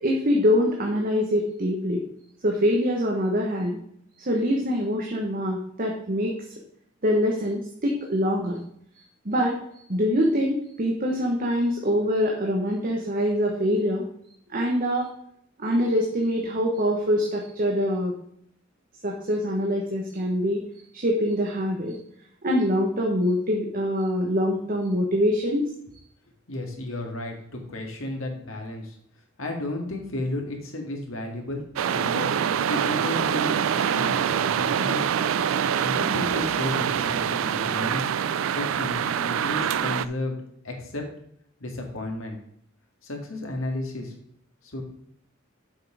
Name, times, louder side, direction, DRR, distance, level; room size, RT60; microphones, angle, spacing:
voice 1, 0.0-2.0 2.4-3.8 4.3-6.3 7.0-8.6 9.2-9.5 9.9-14.0 14.5-15.1 15.6-18.1 19.0-20.6 20.9-21.9 22.4-25.6, equal, 45° right, 0 dB, 1.2 m, -24 dB
voice 2, 26.5-28.9 29.4-31.6 31.9-32.3 32.7-35.1 35.8-38.1 38.5-40.3 40.6-41.0 41.6-42.4 43.0-44.1 44.7-44.8, left 1 dB, 90° left, 2 dB, 1.9 m, -33 dB
sound 1, 31.8-40.1, right 8 dB, 80° right, 0.4 m, -25 dB
7.6 x 5.7 x 4.9 m, 0.68 s
head